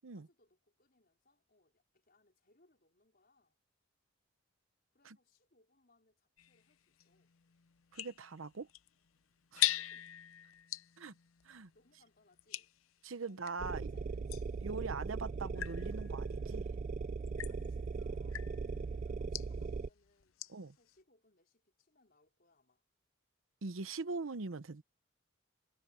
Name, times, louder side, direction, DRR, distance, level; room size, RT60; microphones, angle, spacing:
voice 1, 0.1-3.6 4.9-7.3 9.7-10.2 11.7-12.7 13.3-14.3 14.9-15.2 17.5-22.8, left 2 dB, 45° left, 4.8 m, -72 dB
sound 1, 6.4-13.6 14.3-20.7, left 15 dB, 90° left, 0.6 m, -43 dB
voice 2, 7.9-8.7 9.5-9.8 11.0-11.1 11.4-11.7 13.0-13.9 14.6-16.7 20.5-20.7 23.6-24.8, right 4 dB, 75° right, 0.8 m, -42 dB
sound 2, 13.6-19.9, right 4 dB, 35° right, 0.3 m, -39 dB
head